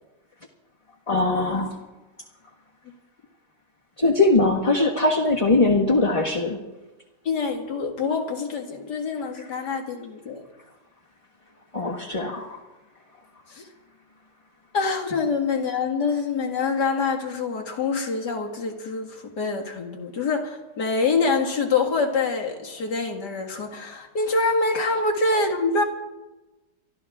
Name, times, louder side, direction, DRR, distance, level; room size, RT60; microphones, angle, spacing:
voice 1, 1.1-1.7 4.0-6.6 11.7-12.5, left 2 dB, 20° left, -2 dB, 1.6 m, -21 dB
voice 2, 7.2-10.4 13.5-13.7 14.7-25.8, left 4 dB, 70° left, 2 dB, 2.6 m, -25 dB
24.5 x 13.5 x 3.6 m, 1.1 s
omnidirectional pair, 1.8 m